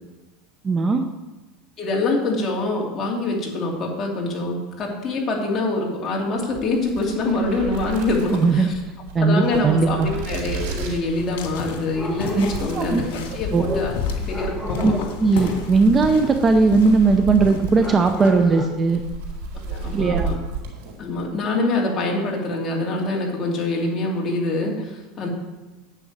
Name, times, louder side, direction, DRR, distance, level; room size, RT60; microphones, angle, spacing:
voice 1, 0.6-1.1 8.3-8.7 9.1-10.1 12.3-12.5 12.7-13.0 13.5-13.8 14.8-14.9 15.2-19.0 19.9-20.3, right 4 dB, 20° right, 7 dB, 0.7 m, -18 dB
voice 2, 1.8-8.7 9.2-15.0 19.7-20.3 21.0-25.3, left 2 dB, 25° left, -1 dB, 2.9 m, -25 dB
sound 1, 6.4-21.3, right 4 dB, 75° right, 3.7 m, -34 dB
sound 2, 11.1-18.5, left 5 dB, 80° left, 2.7 m, -32 dB
sound 3, 11.9-12.8 13.6-15.7 17.8-18.6, left 1 dB, 5° right, 1.5 m, -33 dB
10.0 x 6.2 x 8.7 m, 1.1 s
supercardioid pair, 155°, 0 cm